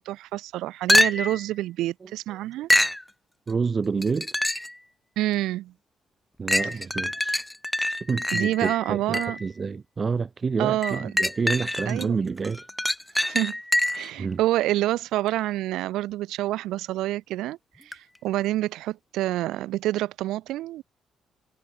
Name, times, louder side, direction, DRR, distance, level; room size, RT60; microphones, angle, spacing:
voice 1, 0.0-2.7 5.2-5.7 6.6-6.7 8.3-9.4 10.6-11.1 11.9-12.2 13.3-13.6 13.9-20.8, right 15 dB, 90° right, 2.8 m, -27 dB
sound 1, 0.9-1.5 2.7-3.0 4.0-4.8 5.3-5.4 6.5-9.5 10.8-12.1 12.4-14.1 17.9-18.0, left 1 dB, 10° left, 0.8 m, -25 dB
voice 2, 3.5-4.3 6.4-7.4 8.0-12.6 14.2-14.4, right 5 dB, 35° right, 1.2 m, -28 dB
cardioid pair, 90°, 0 cm